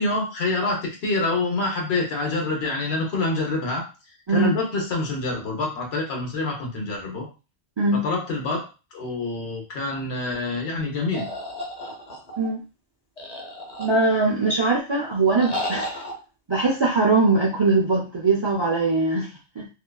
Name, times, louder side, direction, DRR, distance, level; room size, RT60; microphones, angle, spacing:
voice 1, 0.0-3.8 4.3-7.3 7.9-11.3, left 3 dB, 70° left, 0 dB, 1.0 m, -26 dB
sound 1, 11.1-12.5 13.2-14.3 15.4-16.1, equal, 45° left, 0.7 m, -32 dB
voice 2, 13.8-15.9 16.5-19.3 19.6-19.7, right 3 dB, 45° right, -3 dB, 0.3 m, -21 dB
2.7 x 2.3 x 2.2 m, 0.32 s
omnidirectional pair, 1.1 m